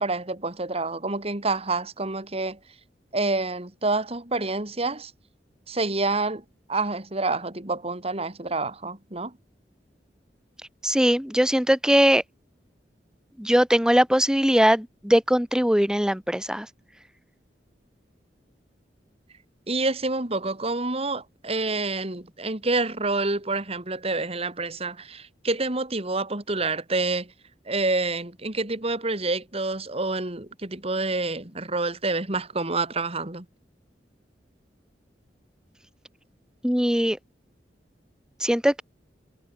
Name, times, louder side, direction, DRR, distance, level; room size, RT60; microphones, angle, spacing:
voice 1, 0.0-2.6 3.1-5.1 5.7-6.4 6.7-9.4 19.7-27.3 27.7-33.5, right 3 dB, 35° right, 2.8 m, -28 dB
voice 2, 10.8-12.2 13.4-16.7 36.6-37.2 38.4-38.8, equal, 5° right, 1.5 m, -20 dB
head